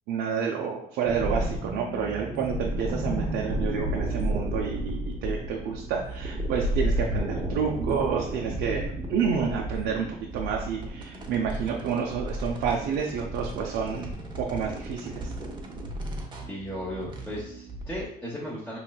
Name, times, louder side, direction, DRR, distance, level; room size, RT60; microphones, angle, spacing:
voice 1, 0.1-15.3, right 6 dB, 85° right, 0 dB, 0.5 m, -29 dB
sound 1, 1.0-18.0, right 1 dB, 30° right, 0.7 m, -32 dB
voice 2, 16.5-18.8, equal, 5° left, -7 dB, 0.8 m, -36 dB
4.4 x 3.1 x 2.2 m, 0.71 s
cardioid pair, 110°, 17 cm